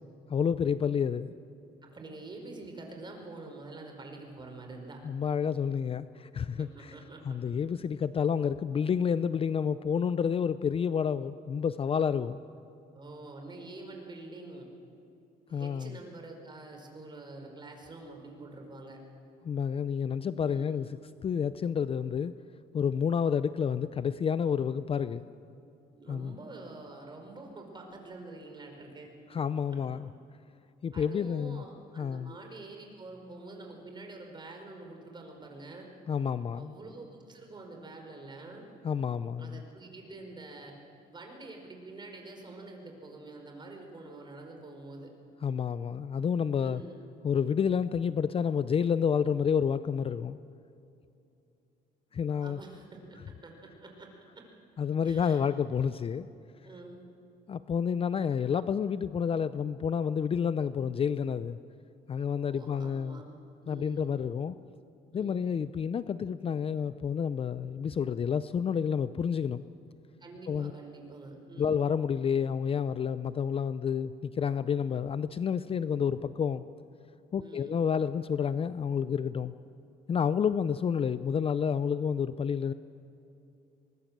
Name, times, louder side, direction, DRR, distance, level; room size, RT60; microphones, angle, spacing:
voice 1, 0.3-1.3 5.0-6.9 7.3-12.4 15.5-16.0 19.4-20.9 21.2-22.3 22.7-25.3 26.1-26.3 29.3-30.1 30.8-31.6 32.0-32.3 36.1-36.7 38.8-39.6 45.4-46.8 47.2-50.4 52.1-52.6 54.8-56.3 57.5-61.6 62.1-63.2 63.7-64.6 65.1-69.6 70.5-70.7 71.6-76.6 77.3-79.5 80.1-82.7, left 7 dB, 35° left, 14 dB, 0.5 m, -29 dB
voice 2, 1.8-5.0 6.4-7.4 12.9-14.7 15.5-19.0 20.4-20.8 25.9-29.1 30.9-35.9 36.5-38.7 39.4-40.7 41.1-45.1 46.5-47.0 52.4-54.4 55.0-55.4 56.6-57.1 62.5-63.2 63.6-64.2 65.1-65.5 70.2-71.8 77.4-77.8, right 2 dB, 25° right, 3 dB, 5.1 m, -46 dB
23.0 x 20.5 x 7.5 m, 2.7 s
cardioid pair, 110°, 17 cm